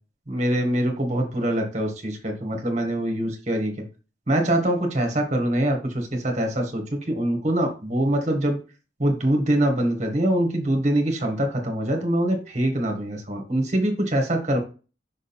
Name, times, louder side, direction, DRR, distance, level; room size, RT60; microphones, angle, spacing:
voice 1, 0.3-3.7 4.3-8.6 9.0-14.6, right 1 dB, 35° right, 3 dB, 1.8 m, -24 dB
6.1 x 3.9 x 4.4 m, 0.33 s
head